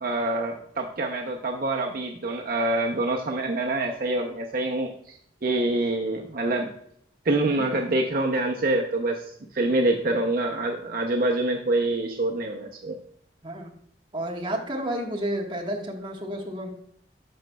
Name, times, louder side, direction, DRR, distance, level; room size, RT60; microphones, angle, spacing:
voice 1, 0.0-6.7 7.2-13.0, right 2 dB, 55° right, 2 dB, 0.7 m, -26 dB
voice 2, 14.1-16.7, right 1 dB, 25° right, -1 dB, 1.3 m, -31 dB
12.5 x 5.1 x 2.3 m, 0.68 s
head